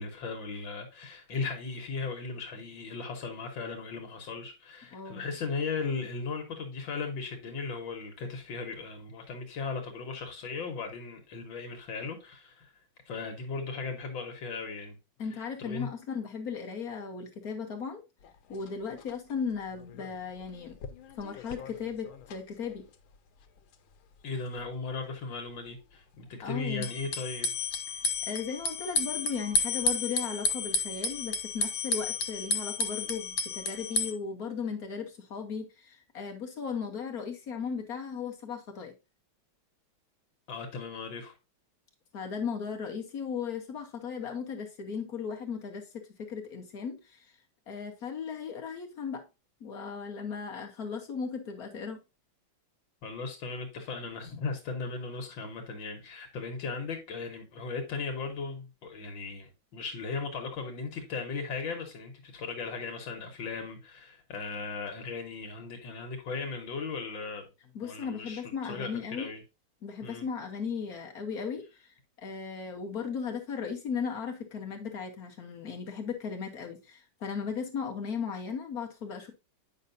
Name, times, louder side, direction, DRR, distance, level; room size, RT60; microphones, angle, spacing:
voice 1, 0.0-12.7 13.1-15.0 15.3-15.9 24.2-27.5 40.5-41.3 53.0-67.4 67.8-69.4 70.0-70.2, left 4 dB, 75° left, 1.9 m, -37 dB
voice 2, 4.9-5.2 15.2-18.0 18.5-20.8 21.2-22.9 26.4-26.9 28.2-38.9 42.1-47.4 47.7-49.2 49.6-52.0 67.7-69.3 69.8-79.3, left 6 dB, 55° left, 1.3 m, -36 dB
sound 1, 18.2-18.3 18.7-18.8 19.0-19.1 19.8-20.1 20.4-22.4 22.7-22.8 26.8-34.1, left 3 dB, 90° left, 1.6 m, -32 dB
8.5 x 5.6 x 2.6 m
omnidirectional pair, 2.2 m